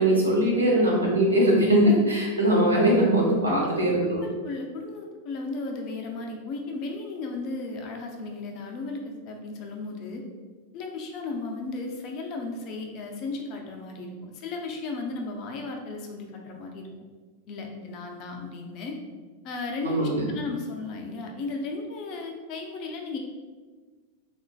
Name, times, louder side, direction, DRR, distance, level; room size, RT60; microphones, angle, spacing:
voice 1, 0.0-4.2 19.8-20.3, right 1 dB, 80° right, -4 dB, 0.7 m, -21 dB
voice 2, 3.5-10.2 10.7-16.9 17.5-19.0 19.4-23.2, left 3 dB, 40° left, 2 dB, 0.4 m, -35 dB
3.6 x 2.5 x 2.3 m, 1.4 s
figure-of-eight pair, 90°, 0 cm